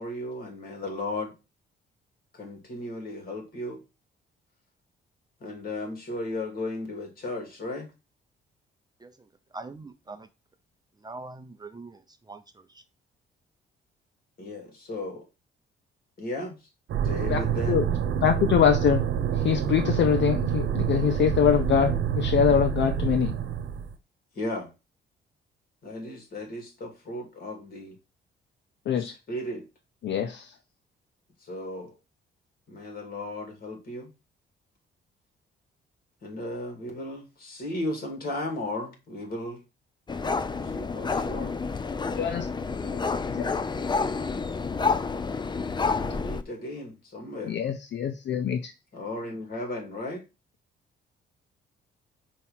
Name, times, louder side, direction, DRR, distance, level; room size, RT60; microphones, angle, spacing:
voice 1, 0.0-1.3 2.3-3.8 5.4-7.9 14.4-15.3 16.2-16.6 17.0-17.8 24.3-24.7 25.8-28.0 29.0-29.6 31.4-31.9 32.7-34.1 36.2-39.6 40.7-41.5 42.8-43.1 45.7-47.6 48.9-50.2, left 1 dB, 50° left, 2.6 m, -35 dB
voice 2, 9.5-10.3 11.0-12.0 12.3-12.4, right 3 dB, 20° right, 0.6 m, -41 dB
sound 1, 16.9-23.9, right 8 dB, 70° right, 1.1 m, -27 dB
voice 3, 18.2-19.0 19.3-23.3 28.9-29.1 30.0-30.5 42.2-42.5 43.3-43.5 47.4-48.7, left 8 dB, 65° left, 0.7 m, -24 dB
sound 2, 40.1-46.4, left 4 dB, 20° left, 0.5 m, -29 dB
5.5 x 3.1 x 5.5 m
cardioid pair, 90°, 20 cm